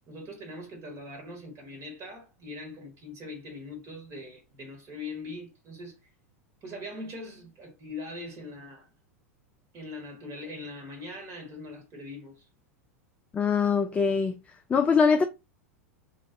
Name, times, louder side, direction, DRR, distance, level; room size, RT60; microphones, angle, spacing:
voice 1, 0.1-5.9 6.6-8.9 9.7-12.5, left 2 dB, 35° right, 1.4 m, -41 dB
voice 2, 13.3-14.4 14.7-15.2, left 5 dB, 15° left, 0.3 m, -22 dB
3.0 x 2.4 x 3.8 m
figure-of-eight pair, 90°, 8 cm